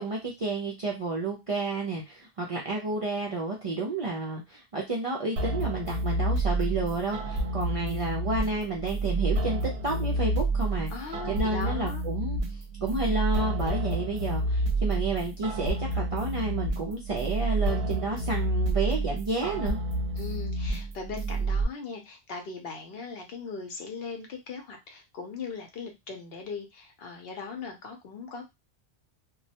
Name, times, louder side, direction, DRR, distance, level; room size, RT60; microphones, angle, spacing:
voice 1, 0.0-10.9 11.3-12.4 12.8-19.8, right 3 dB, 50° right, -2 dB, 0.4 m, -31 dB
sound 1, 5.4-21.6, right 2 dB, 70° right, 0.8 m, -29 dB
voice 2, 10.9-12.0 20.2-28.4, left 4 dB, 65° left, 4 dB, 0.8 m, -39 dB
2.2 x 2.0 x 2.7 m, 0.22 s
omnidirectional pair, 1.1 m